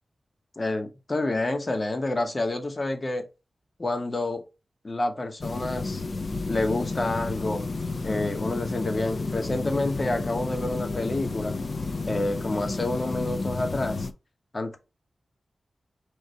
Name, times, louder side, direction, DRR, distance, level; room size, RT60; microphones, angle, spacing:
voice 1, 0.6-3.2 3.8-4.4 4.8-6.0 6.5-7.6 8.0-11.5 12.1-14.1 14.5-14.8, left 2 dB, 40° left, 1.0 m, -28 dB
sound 1, 5.4-14.1, left 3 dB, 60° left, 0.5 m, -31 dB
4.7 x 2.6 x 4.0 m
cardioid pair, 55°, 0 cm